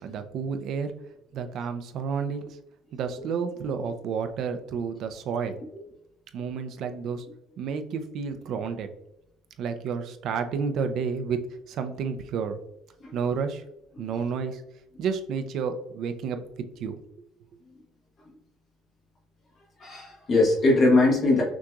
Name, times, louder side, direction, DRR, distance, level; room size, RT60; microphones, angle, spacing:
voice 1, 0.0-0.9 1.3-2.4 2.9-5.6 6.3-7.3 7.6-8.9 9.6-11.4 11.7-12.6 13.1-13.6 14.0-14.6 15.0-16.4 16.8-17.0, right 6 dB, 55° right, 8 dB, 0.5 m, -30 dB
voice 2, 19.8-21.4, left 2 dB, 35° left, -3 dB, 1.2 m, -21 dB
6.0 x 2.9 x 2.4 m, 0.82 s
cardioid pair, 170°, 0 cm